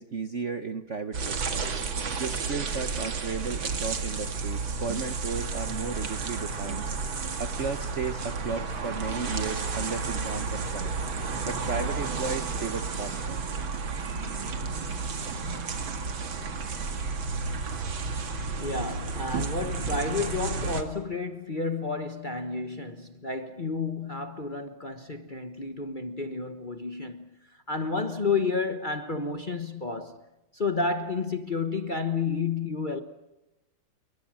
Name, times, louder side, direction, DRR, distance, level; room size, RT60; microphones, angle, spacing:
voice 1, 0.0-1.7 2.2-6.8 7.4-10.9 11.4-13.4, right 5 dB, 45° right, 1.0 m, -34 dB
sound 1, 1.1-20.8, right 4 dB, 70° right, 2.8 m, -32 dB
voice 2, 18.6-30.2 30.5-33.0, left 4 dB, 30° left, 1.1 m, -31 dB
28.5 x 23.5 x 7.5 m
omnidirectional pair, 2.3 m